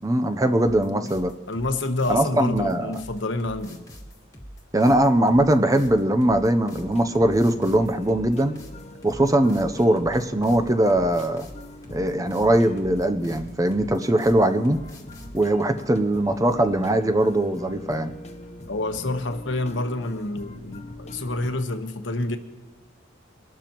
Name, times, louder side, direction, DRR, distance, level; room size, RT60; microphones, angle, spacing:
voice 1, 0.0-1.3 2.1-3.0 4.7-8.5 9.0-11.5 11.9-14.8 15.3-18.1, right 1 dB, 15° right, 9 dB, 0.6 m, -21 dB
sound 1, 0.6-15.5, equal, 15° left, 1.5 m, -44 dB
voice 2, 1.5-3.8 18.7-22.4, left 2 dB, 65° left, 7 dB, 1.1 m, -28 dB
sound 2, 6.7-21.6, left 1 dB, 35° left, 0.7 m, -42 dB
23.5 x 12.0 x 3.0 m, 1.2 s
head